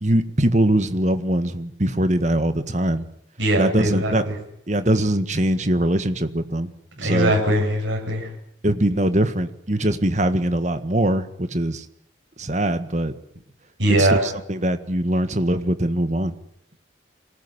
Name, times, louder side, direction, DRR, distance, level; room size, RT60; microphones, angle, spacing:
voice 1, 0.0-3.0 3.6-4.2 4.7-6.7 7.0-7.3 8.6-11.8 12.4-13.1 14.0-16.4, right 1 dB, 40° right, 10 dB, 1.7 m, -22 dB
voice 2, 3.4-4.4 7.0-8.3 13.8-14.2, right 1 dB, 85° right, 1 dB, 7.4 m, -21 dB
25.0 x 19.0 x 9.9 m, 0.72 s
head